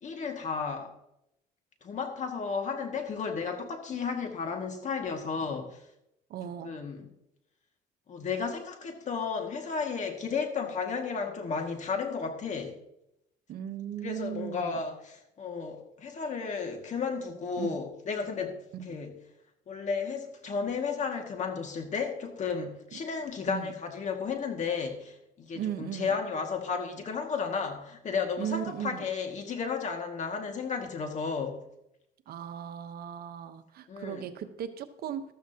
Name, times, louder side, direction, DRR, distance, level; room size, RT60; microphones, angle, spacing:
voice 1, 0.0-0.9 1.8-5.8 6.6-7.1 8.1-12.7 14.0-19.2 19.7-31.6 33.9-34.2, left 5 dB, 45° left, 4 dB, 2.1 m, -33 dB
voice 2, 6.3-6.8 13.5-14.8 17.6-17.8 18.7-19.0 22.9-23.0 23.5-23.7 25.5-26.1 28.4-29.0 32.3-35.2, right 9 dB, 65° right, 9 dB, 1.1 m, -37 dB
13.5 x 13.0 x 2.9 m, 0.81 s
cardioid pair, 110°, 17 cm